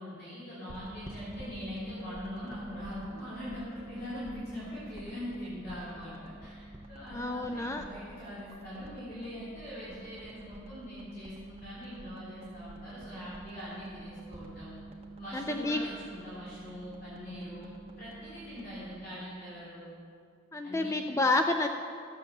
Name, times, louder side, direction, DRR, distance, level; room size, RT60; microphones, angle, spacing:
voice 1, 0.0-14.8 15.2-19.9 20.6-21.0, left 1 dB, 45° left, -11 dB, 3.5 m, -42 dB
sound 1, 0.7-9.0 9.2-10.9 11.2-14.5, equal, 10° right, 1.0 m, -51 dB
sound 2, 0.7-19.1, right 2 dB, 30° right, 1.3 m, -47 dB
voice 2, 7.1-7.8 15.3-15.8 20.5-21.7, left 2 dB, 15° left, 5 dB, 0.4 m, -29 dB
13.5 x 7.7 x 6.7 m, 2.4 s
head